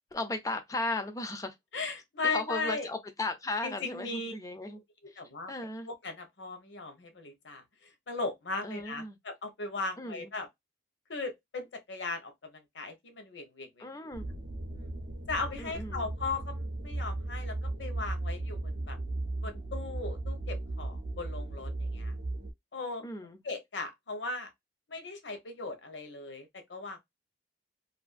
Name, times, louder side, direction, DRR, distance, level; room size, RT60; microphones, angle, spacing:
voice 1, 0.1-1.5 2.2-4.8 5.1-5.2 5.5-5.9 8.6-9.2 10.0-10.3 13.8-14.3 15.6-16.1 23.0-23.4, left 2 dB, 20° left, 0.3 m, -36 dB
voice 2, 1.7-2.9 3.6-4.3 4.7-5.5 5.9-10.5 11.1-13.9 14.7-14.9 15.3-19.0 19.4-22.1 22.7-23.1 23.4-24.5 24.9-27.0, left 3 dB, 75° left, 0.8 m, -38 dB
sound 1, 14.1-22.5, right 2 dB, 70° right, 0.6 m, -36 dB
2.5 x 2.5 x 2.4 m
head